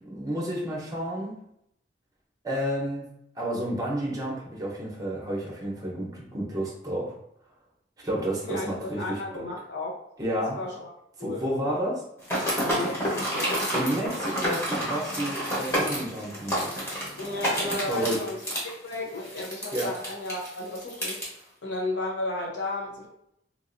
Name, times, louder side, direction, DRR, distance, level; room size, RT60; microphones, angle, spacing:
voice 1, 0.0-1.4 2.4-3.1 3.4-7.1 8.0-9.2 10.2-10.6 11.2-12.0 13.7-16.6 17.9-18.2 19.7-19.9, right 1 dB, 20° right, -3 dB, 0.8 m, -30 dB
voice 2, 8.4-9.9 10.5-10.9 11.2-11.8 12.6-13.7 17.2-21.2 21.6-23.1, left 2 dB, 75° left, -2 dB, 0.8 m, -34 dB
sound 1, 12.2-21.3, equal, 15° left, 1.0 m, -29 dB
3.1 x 2.6 x 2.6 m, 0.78 s
head